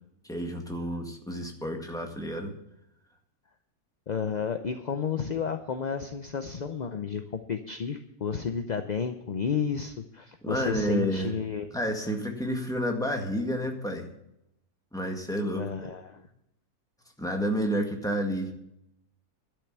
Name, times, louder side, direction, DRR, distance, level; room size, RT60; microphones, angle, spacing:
voice 1, 0.3-2.5 10.4-11.3 11.7-14.1 14.9-15.7 17.2-18.5, equal, ahead, 2 dB, 1.8 m, -30 dB
voice 2, 4.1-11.7 15.5-16.2, left 6 dB, 45° left, 8 dB, 0.6 m, -32 dB
12.0 x 6.7 x 9.2 m, 0.79 s
omnidirectional pair, 1.5 m